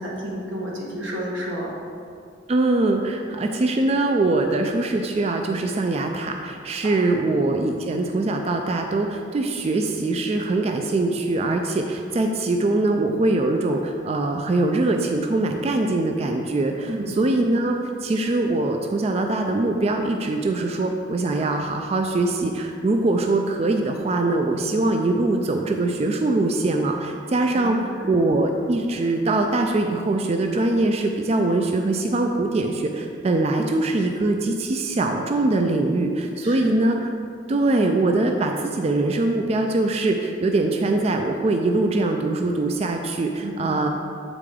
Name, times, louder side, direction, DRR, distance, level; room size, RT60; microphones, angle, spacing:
voice 1, 0.0-1.7 6.8-7.1 16.9-17.2 27.5-28.1 33.4-33.6 36.4-36.7 43.4-43.7, equal, 85° right, -4 dB, 1.5 m, -32 dB
voice 2, 2.5-16.9 17.2-27.8 28.0-37.1 37.5-43.9, right 2 dB, 35° right, 3 dB, 0.3 m, -22 dB
7.6 x 5.0 x 3.6 m, 2.4 s
head